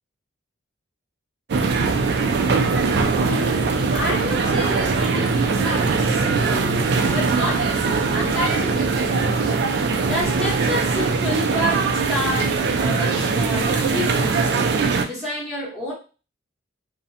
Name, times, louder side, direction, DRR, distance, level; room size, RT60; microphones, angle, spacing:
sound 1, 1.5-15.0, right 4 dB, 55° right, 0.3 m, -21 dB
voice 1, 3.1-6.8 7.1-9.5 10.0-14.7 15.1-15.9, equal, ahead, -9 dB, 1.1 m, -29 dB
2.5 x 2.1 x 2.7 m, 0.33 s
head